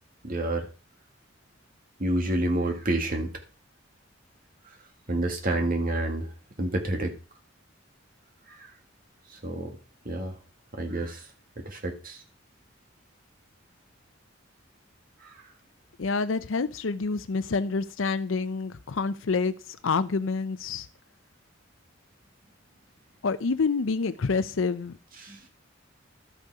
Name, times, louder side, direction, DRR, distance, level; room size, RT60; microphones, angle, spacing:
voice 1, 0.2-0.7 2.0-3.3 5.1-6.3 6.6-7.1 8.5-8.7 9.4-9.7 10.1-10.3 10.7-11.3 11.6-12.2 15.2-15.3 25.2-25.4, right 1 dB, 45° right, 2.0 m, -29 dB
voice 2, 16.0-20.9 23.2-25.0, left 4 dB, 75° left, 0.6 m, -27 dB
12.0 x 6.7 x 4.8 m
head